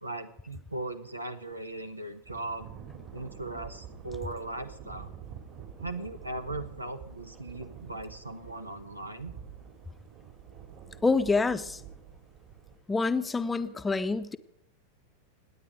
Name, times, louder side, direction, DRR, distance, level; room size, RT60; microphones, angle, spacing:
voice 1, 0.0-2.7 3.1-5.1 5.8-9.3, right 2 dB, 85° right, 10 dB, 1.2 m, -38 dB
Thunder / Rain, 2.2-12.8, right 8 dB, 45° right, 2.7 m, -47 dB
voice 2, 11.0-11.8 12.9-14.4, left 4 dB, 10° left, 11 dB, 0.8 m, -27 dB
26.5 x 9.6 x 5.0 m, 0.71 s
figure-of-eight pair, 90°, 0 cm